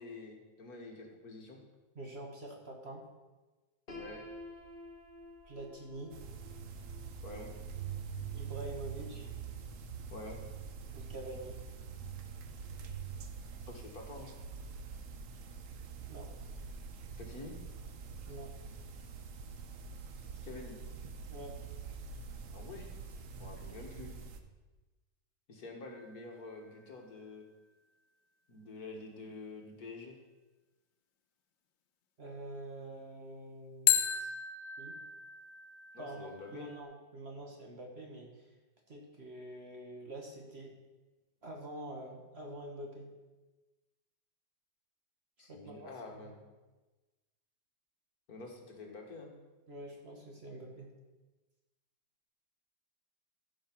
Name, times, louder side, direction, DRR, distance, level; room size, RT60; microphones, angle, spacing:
voice 1, 0.0-1.6 3.9-4.2 7.2-7.5 10.1-10.4 13.7-14.3 17.2-17.5 20.4-20.8 22.5-22.9 23.4-24.1 25.5-27.5 28.5-30.2 35.9-36.7 45.4-46.4 48.3-49.3, left 3 dB, 60° left, 1 dB, 1.9 m, -47 dB
voice 2, 1.9-3.0 5.5-6.1 8.3-9.3 10.9-11.6 16.1-16.3 18.3-18.5 21.3-21.6 32.2-34.3 34.8-35.0 36.0-38.5 38.9-40.7 41.4-43.1 45.4-46.3 49.7-50.9, right 1 dB, 40° right, 1 dB, 1.4 m, -46 dB
Piano, 3.9-9.7, left 1 dB, 35° left, 1.4 m, -52 dB
sound 1, 6.1-24.4, right 6 dB, 55° right, 1.0 m, -45 dB
sound 2, 25.8-26.9 33.9-36.8, left 9 dB, 90° left, 1.5 m, -34 dB
15.0 x 5.0 x 6.0 m, 1.2 s
omnidirectional pair, 1.9 m